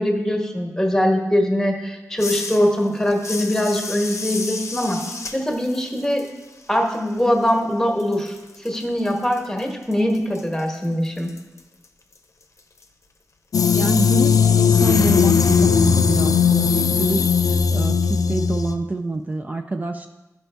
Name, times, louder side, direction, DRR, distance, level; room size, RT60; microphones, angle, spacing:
voice 1, 0.0-5.0 5.3-6.2 6.7-8.4 8.6-11.3, equal, 5° left, 2 dB, 1.1 m, -22 dB
sound 1, 2.2-7.7 8.0-12.8, left 3 dB, 55° left, 0.7 m, -35 dB
sound 2, 13.5-18.7, left 6 dB, 90° left, 0.4 m, -17 dB
voice 2, 13.7-20.1, right 2 dB, 30° right, 6 dB, 0.3 m, -27 dB
10.5 x 5.2 x 3.4 m, 1.1 s
wide cardioid pair, 90°, 6 cm